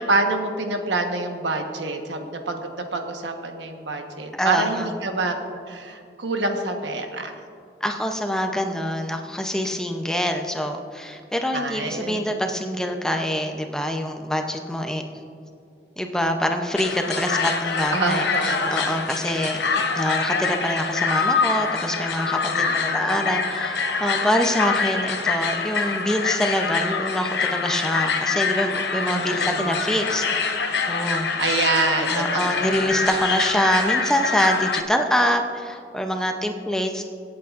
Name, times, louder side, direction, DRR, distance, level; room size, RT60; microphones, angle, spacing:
voice 1, 0.0-5.3 5.7-7.3 11.5-12.2 17.9-18.7 22.5-23.3 29.1-29.7 31.4-32.9, right 3 dB, 90° right, 4 dB, 1.2 m, -26 dB
voice 2, 4.3-4.9 7.8-15.0 16.0-19.6 19.9-31.3 32.1-37.0, equal, 5° left, 4 dB, 0.6 m, -25 dB
sound 1, 16.7-34.8, left 5 dB, 75° left, 0.8 m, -25 dB
24.5 x 8.5 x 2.5 m, 2.5 s
head